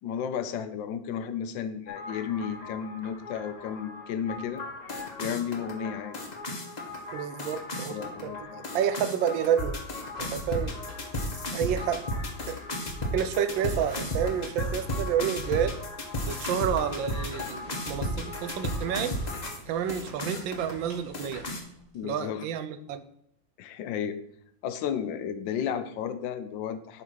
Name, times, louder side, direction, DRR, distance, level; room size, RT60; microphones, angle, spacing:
voice 1, 0.0-4.6 5.2-6.2 7.9-8.7 21.9-22.5 23.6-24.2 24.6-27.0, left 8 dB, 75° left, 11 dB, 1.3 m, -33 dB
sound 1, 1.9-19.6 19.9-20.7 21.1-21.6, left 1 dB, 25° left, 1.0 m, -35 dB
voice 2, 7.1-9.8 10.2-10.8 11.5-12.0 12.5-12.6 13.1-15.8 16.3-19.2 19.7-21.4 22.0-23.1, right 9 dB, 80° right, 11 dB, 1.4 m, -29 dB
sound 2, 10.1-22.1, left 2 dB, 30° right, 2.5 m, -50 dB
sound 3, 16.4-21.6, left 1 dB, 45° left, 0.6 m, -49 dB
8.3 x 4.0 x 6.1 m, 0.70 s
omnidirectional pair, 2.1 m